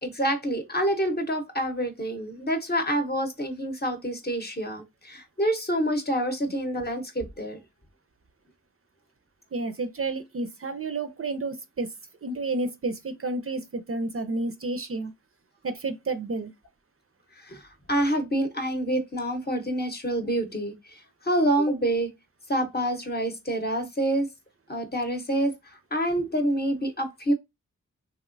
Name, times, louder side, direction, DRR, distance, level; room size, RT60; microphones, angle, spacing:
voice 1, 0.0-7.6 17.4-22.1 22.5-24.3 24.7-27.3, right 1 dB, 30° left, 0.7 m, -27 dB
voice 2, 9.5-11.9 12.2-15.1 15.6-16.5, right 3 dB, 45° right, 0.4 m, -30 dB
3.0 x 2.8 x 2.5 m
wide cardioid pair, 70°, 31 cm